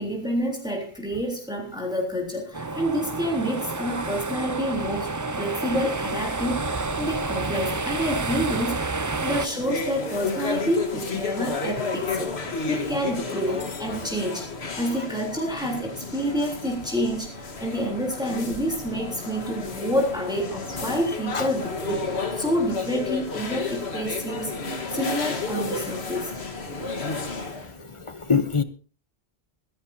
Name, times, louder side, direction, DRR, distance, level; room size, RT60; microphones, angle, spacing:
voice 1, 0.0-12.3 12.7-14.5 14.8-26.3, equal, 5° right, -1 dB, 3.5 m, -28 dB
sound 1, 2.5-9.5, right 3 dB, 25° right, 0.5 m, -29 dB
sound 2, 9.3-27.7, left 4 dB, 90° left, 1.8 m, -32 dB
voice 2, 27.8-28.6, left 5 dB, 30° left, 11 dB, 0.9 m, -24 dB
26.0 x 11.0 x 2.8 m, 0.39 s
omnidirectional pair, 1.1 m